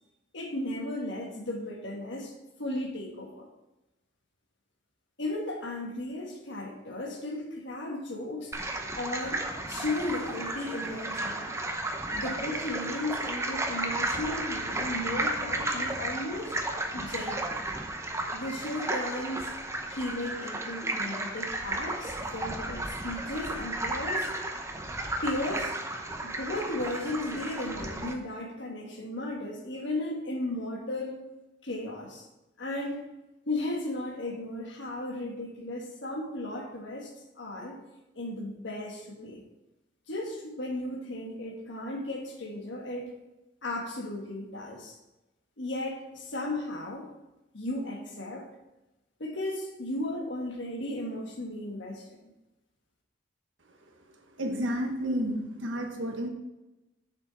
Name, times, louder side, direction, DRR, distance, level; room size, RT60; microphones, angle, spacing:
voice 1, 0.3-2.3 2.6-3.5 5.2-8.5 8.9-11.5 12.1-16.5 16.9-17.6 18.3-19.5 19.9-24.3 25.2-25.7 26.4-31.3 31.6-32.3 32.6-33.1 33.5-37.8 38.1-39.4 40.1-43.1 43.6-45.0 45.6-47.1 47.5-48.5 49.2-52.2, left 1 dB, 70° left, 1 dB, 1.5 m, -35 dB
sound 1, 8.5-28.1, right 2 dB, 15° right, 0.8 m, -33 dB
voice 2, 54.4-56.3, equal, 80° right, 3 dB, 1.3 m, -31 dB
7.0 x 6.6 x 4.1 m, 1.0 s
head